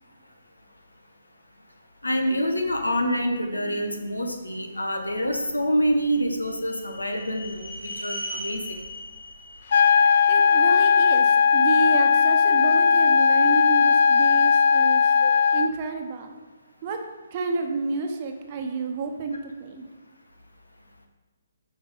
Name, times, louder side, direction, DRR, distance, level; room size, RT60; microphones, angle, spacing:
voice 1, 2.0-8.8 15.2-15.3, equal, 80° left, 4 dB, 1.3 m, -26 dB
sound 1, 5.7-10.9, left 1 dB, 90° right, 1.8 m, -39 dB
sound 2, 9.7-15.7, left 6 dB, 50° left, 0.3 m, -18 dB
voice 2, 10.3-15.2 15.5-16.4 16.8-19.9, right 4 dB, 35° right, 4 dB, 1.1 m, -30 dB
8.5 x 5.3 x 5.6 m, 1.2 s
figure-of-eight pair, 135°, 0 cm